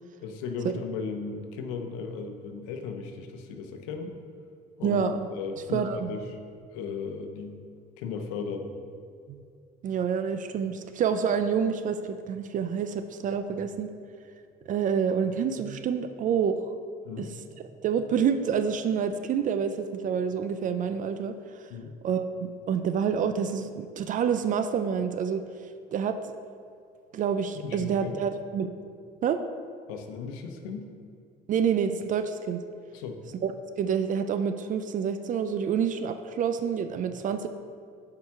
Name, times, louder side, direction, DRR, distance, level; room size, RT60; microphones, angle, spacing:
voice 1, 0.2-4.1 4.8-5.0 5.3-6.4 6.7-7.6 8.0-8.7 13.5-13.6 17.0-17.3 21.7-22.0 27.5-28.1 29.9-30.9 32.9-33.2 37.1-37.2, left 5 dB, 90° left, 5 dB, 0.8 m, -36 dB
voice 2, 4.8-5.3 5.7-6.1 9.3-9.4 9.8-13.9 14.7-16.7 17.2-17.3 17.8-21.7 22.0-26.2 27.1-28.7 29.2-29.4 31.5-32.6 33.4-33.5 33.8-37.5, right 7 dB, 50° right, 9 dB, 0.5 m, -28 dB
7.1 x 4.8 x 5.8 m, 2.3 s
supercardioid pair, 90°, 18 cm